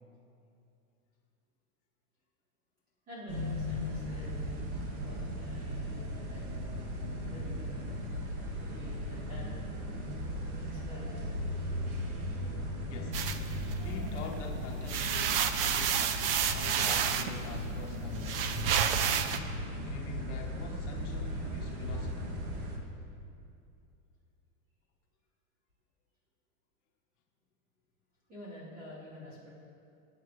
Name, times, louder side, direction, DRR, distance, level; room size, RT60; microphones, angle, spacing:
voice 1, 3.1-6.4 7.3-8.1 8.6-9.7 10.5-11.3 13.4-13.5 28.3-29.5, left 1 dB, 20° right, -8 dB, 3.8 m, -48 dB
sound 1, 3.3-22.8, equal, 85° right, 2.5 m, -37 dB
voice 2, 12.8-13.3 13.8-16.2 16.5-18.8 19.8-22.4, left 5 dB, 55° left, 1 dB, 1.3 m, -45 dB
sound 2, 13.1-14.3 14.7-19.4, right 8 dB, 45° right, 0.6 m, -30 dB
25.0 x 9.3 x 3.3 m, 2.5 s
supercardioid pair, 175°, 42 cm